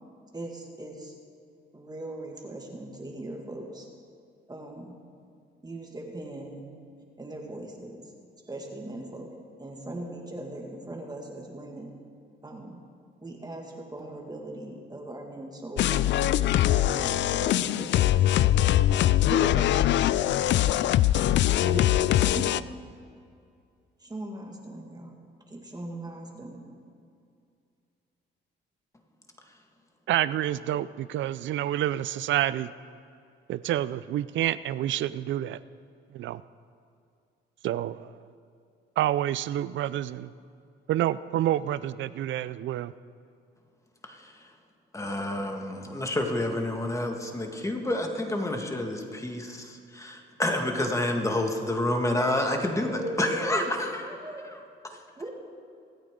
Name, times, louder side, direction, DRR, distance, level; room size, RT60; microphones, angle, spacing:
voice 1, 0.3-1.1 1.7-3.9 4.5-5.0 5.6-6.7 7.2-8.1 8.5-9.3 9.6-11.9 12.4-12.8 13.2-16.3 16.9-18.0 19.3-20.4 21.5-22.7 24.0-25.1 25.5-26.8 52.6-53.8 54.0-54.4 55.2-55.3, right 1 dB, 20° right, 0 dB, 2.0 m, -39 dB
sound 1, 15.8-22.6, left 13 dB, 65° left, 0.4 m, -22 dB
voice 2, 30.1-32.7 33.5-35.6 36.1-36.4 37.6-38.1 39.0-40.3 40.9-42.9, right 12 dB, 70° right, 16 dB, 0.5 m, -28 dB
voice 3, 44.9-54.0, left 1 dB, 15° left, 3 dB, 1.8 m, -29 dB
24.5 x 8.9 x 3.8 m, 2.4 s
cardioid pair, 90°, 20 cm